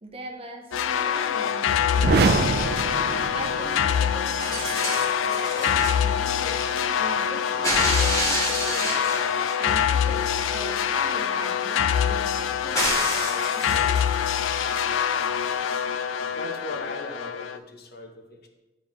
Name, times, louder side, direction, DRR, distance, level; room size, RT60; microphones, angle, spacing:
voice 1, 0.0-2.8 3.3-14.0, right 1 dB, 30° right, 2 dB, 0.8 m, -41 dB
sound 1, 0.7-17.6, left 8 dB, 80° left, 0.3 m, -25 dB
sound 2, 1.9-4.0, right 4 dB, 55° right, 0.4 m, -24 dB
sound 3, 4.4-6.0 7.6-9.6 12.7-14.1 15.4-15.5, equal, 20° left, 1.6 m, -28 dB
voice 2, 16.3-18.5, left 2 dB, 55° left, 3 dB, 0.8 m, -38 dB
10.0 x 3.9 x 3.1 m, 1.1 s
head